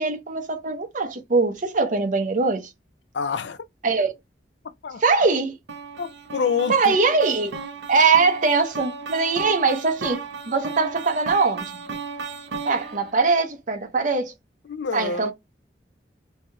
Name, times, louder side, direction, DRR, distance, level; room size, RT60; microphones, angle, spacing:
voice 1, 0.0-2.7 3.8-4.1 5.0-5.6 6.7-7.5 7.9-11.7 12.6-14.3 14.9-15.3, right 4 dB, 45° right, 0.8 m, -22 dB
voice 2, 3.1-3.6 4.8-5.0 6.0-7.0 14.7-15.3, left 5 dB, 75° left, 0.5 m, -27 dB
sound 1, 5.7-13.1, right 5 dB, 85° right, 0.8 m, -35 dB
3.4 x 2.7 x 3.3 m
head